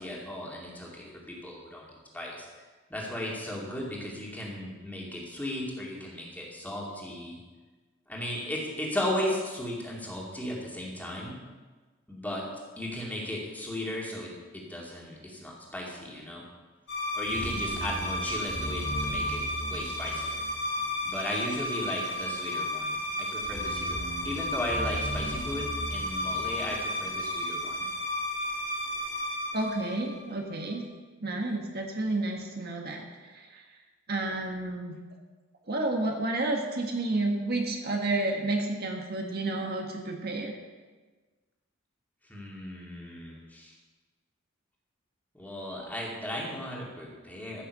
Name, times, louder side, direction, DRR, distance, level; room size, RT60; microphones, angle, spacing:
voice 1, 0.0-1.9 2.1-2.5 2.9-7.4 8.1-11.4 12.1-12.5 12.8-16.4 17.1-19.4 19.7-20.4 21.0-24.0 24.2-27.8 42.3-43.7 45.3-47.6, left 1 dB, 10° left, -4 dB, 2.5 m, -36 dB
sound 1, 16.9-30.5, left 1 dB, 65° left, 5.0 m, -32 dB
voice 2, 29.5-30.8 31.2-33.6 34.1-35.0 35.7-40.6, right 2 dB, 50° right, 1 dB, 1.6 m, -31 dB
15.0 x 6.8 x 6.8 m, 1.3 s
head